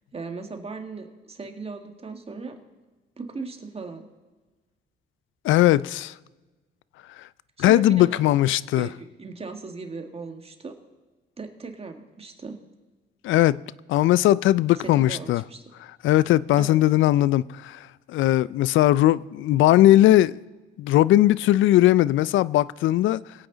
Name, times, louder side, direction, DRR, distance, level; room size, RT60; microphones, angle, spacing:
voice 1, 0.1-2.6 3.2-4.1 7.7-8.2 8.8-10.7 11.4-12.6 15.1-15.6 16.6-16.8, right 4 dB, 30° right, 1.8 m, -37 dB
voice 2, 5.4-6.1 7.6-8.9 13.2-13.6 13.9-15.4 16.0-20.4 20.8-23.2, left 14 dB, 80° left, 0.4 m, -19 dB
23.0 x 8.6 x 3.9 m
cardioid pair, 90°, 20 cm